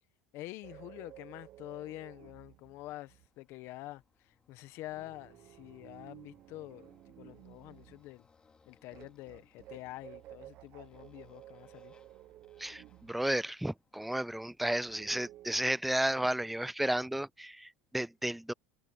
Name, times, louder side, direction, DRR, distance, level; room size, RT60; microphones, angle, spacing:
voice 1, 0.3-8.3 8.7-11.9, left 17 dB, 50° left, 1.4 m, -47 dB
sound 1, 0.6-3.3 4.9-8.1 8.9-13.2 14.9-15.8, right 14 dB, 45° right, 0.9 m, -54 dB
Motorcycle, 2.5-15.2, left 5 dB, 15° left, 2.4 m, -69 dB
voice 2, 12.6-18.5, right 1 dB, ahead, 0.3 m, -33 dB
supercardioid pair, 145°, 5 cm